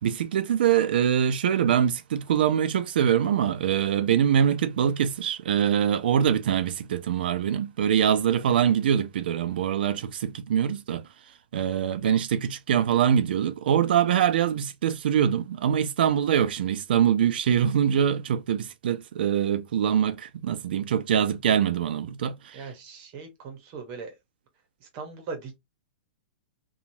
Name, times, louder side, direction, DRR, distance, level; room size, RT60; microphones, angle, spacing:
voice 1, 0.0-11.0 11.5-22.7, right 9 dB, 75° right, 0.5 m, -24 dB
voice 2, 22.5-24.1 24.8-25.6, right 4 dB, 40° right, 1.0 m, -39 dB
2.9 x 2.3 x 2.7 m
hypercardioid pair, 145°, 5 cm